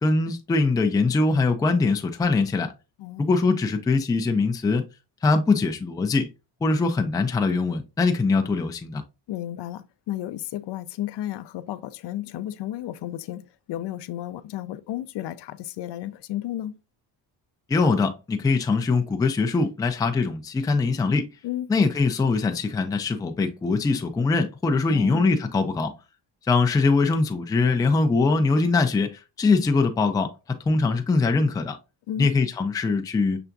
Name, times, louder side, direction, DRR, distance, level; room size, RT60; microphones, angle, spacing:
voice 1, 0.0-2.7 3.2-4.9 5.2-6.3 6.6-9.0 17.7-21.3 21.7-25.9 26.5-31.8 32.2-33.4, left 3 dB, 10° left, 0.3 m, -22 dB
voice 2, 3.0-3.3 9.3-16.8 21.4-21.7 24.9-25.4 32.1-32.4, left 13 dB, 70° left, 0.5 m, -33 dB
5.9 x 3.4 x 2.5 m
cardioid pair, 165°, 43 cm